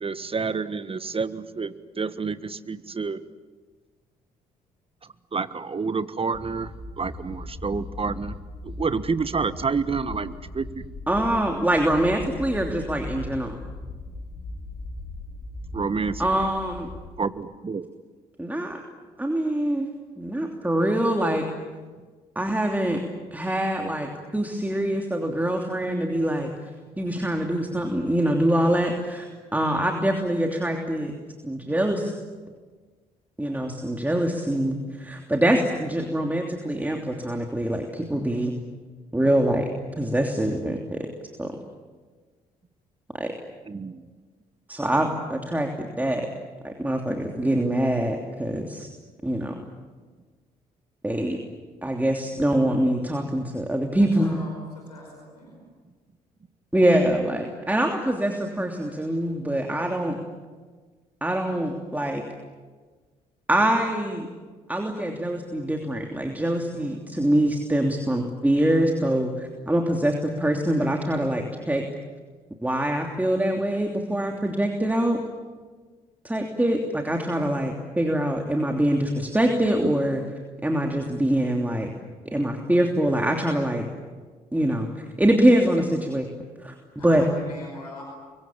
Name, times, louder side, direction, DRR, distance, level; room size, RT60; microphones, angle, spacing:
voice 1, 0.0-3.2 5.3-8.4 8.6-10.9 15.7-16.3 17.2-17.9 43.7-44.0, right 5 dB, 30° right, 14 dB, 1.4 m, -29 dB
sound 1, 6.3-17.1, left 2 dB, 30° left, 4.6 m, -38 dB
voice 2, 11.1-13.6 16.2-16.9 18.4-18.8 19.2-19.9 20.2-21.5 22.3-23.0 23.3-26.5 27.0-31.1 31.4-32.1 33.4-38.5 39.1-39.7 40.0-41.1 41.4-41.5 43.2-43.3 44.7-46.3 46.6-48.9 49.2-49.5 51.0-51.4 51.8-54.3 56.7-60.2 61.2-62.2 63.5-64.3 64.7-71.8 72.6-75.2 76.2-80.2 80.6-81.9 82.2-83.9 84.5-86.3 86.6-86.7 87.0-87.2, right 1 dB, 10° right, 3 dB, 3.1 m, -24 dB
voice 3, 54.0-55.6 87.0-88.0, left 1 dB, 90° left, -1 dB, 5.2 m, -42 dB
30.0 x 24.0 x 7.5 m, 1.4 s
figure-of-eight pair, 45°, 20 cm